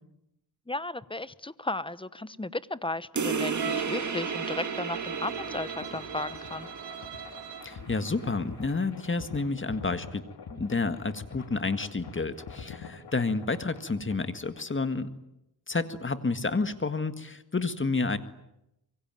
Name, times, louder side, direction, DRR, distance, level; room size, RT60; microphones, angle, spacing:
voice 1, 0.7-6.7, left 2 dB, 15° left, 17 dB, 1.0 m, -35 dB
sound 1, 3.2-8.2, right 5 dB, 45° right, 2.2 m, -34 dB
Bowed string instrument, 3.5-7.8, right 8 dB, 90° right, 4.1 m, -41 dB
sound 2, 5.8-14.7, left 5 dB, 70° left, 3.2 m, -45 dB
voice 2, 7.6-10.2 10.5-15.1 15.7-18.2, left 3 dB, 30° left, 11 dB, 1.8 m, -30 dB
26.0 x 23.5 x 9.2 m, 0.85 s
cardioid pair, 90°, 39 cm